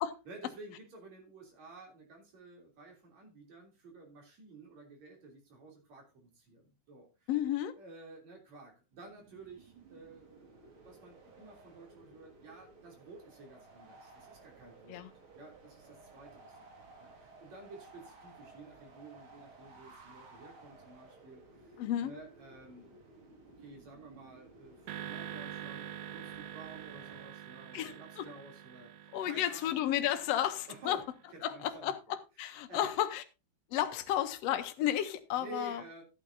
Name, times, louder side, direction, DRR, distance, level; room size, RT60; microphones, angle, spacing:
voice 1, 0.3-7.3 7.7-15.0 15.3-29.8 30.7-31.0 31.3-31.9 32.4-33.0 35.3-36.0, right 2 dB, 65° right, 4.5 m, -52 dB
voice 2, 7.3-7.7 14.9-15.1 21.8-22.1 27.7-28.3 29.1-31.0 31.4-33.2 33.7-35.8, left 11 dB, 70° left, 1.9 m, -32 dB
sound 1, 8.9-27.3, right 3 dB, 45° right, 2.7 m, -57 dB
sound 2, 24.9-31.3, right 10 dB, 85° right, 2.5 m, -46 dB
14.5 x 8.9 x 2.7 m
omnidirectional pair, 3.4 m